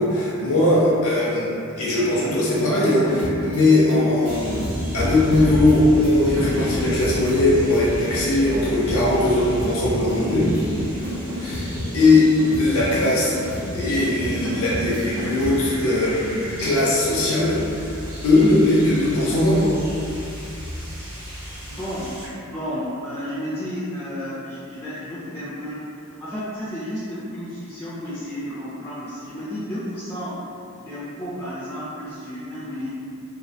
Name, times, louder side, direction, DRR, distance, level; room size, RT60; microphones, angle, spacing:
voice 1, 0.0-1.5 1.8-4.6 4.9-10.5 11.3-11.7 11.9-12.3 12.6-13.3 13.7-17.9 18.2-19.8, left 2 dB, 70° left, -6 dB, 0.5 m, -19 dB
sound 1, 2.5-15.8, equal, 65° right, 0.5 m, -31 dB
sound 2, 4.2-22.3, equal, 90° right, 0.8 m, -34 dB
voice 2, 21.6-30.4 30.8-32.9, equal, 10° left, -11 dB, 0.3 m, -32 dB
2.5 x 2.0 x 2.6 m, 2.6 s
head